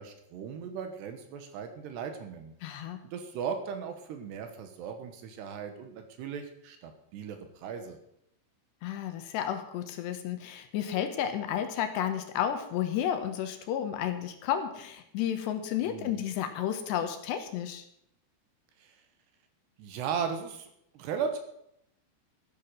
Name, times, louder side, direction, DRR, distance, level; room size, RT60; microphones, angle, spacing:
voice 1, 0.0-2.5 3.0-8.0 15.8-16.2 18.8-19.0 19.8-21.4, right 6 dB, 75° right, 7 dB, 3.2 m, -37 dB
voice 2, 2.6-3.0 8.8-17.9, left 10 dB, 75° left, 7 dB, 3.2 m, -32 dB
14.0 x 8.5 x 6.5 m, 0.74 s
omnidirectional pair, 5.2 m